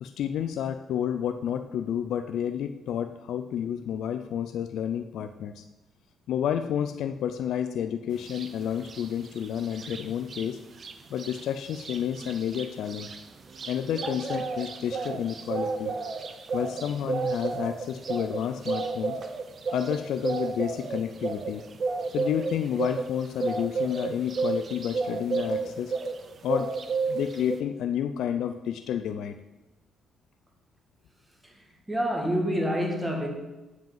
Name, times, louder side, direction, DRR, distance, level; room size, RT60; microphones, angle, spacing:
voice 1, 0.0-5.6 6.3-10.6 11.1-13.1 13.7-15.9 16.5-19.2 19.7-21.6 22.1-25.9 26.4-26.7 27.1-29.3, left 9 dB, 75° left, 8 dB, 0.4 m, -30 dB
sound 1, 8.3-8.5 8.8-10.5 10.8-10.9 11.2-26.2 26.5-27.6, right 4 dB, 45° right, 0.8 m, -32 dB
voice 2, 31.4-33.3, equal, 10° right, 1 dB, 1.9 m, -28 dB
7.9 x 5.1 x 7.4 m, 1.0 s
cardioid pair, 90°, 0 cm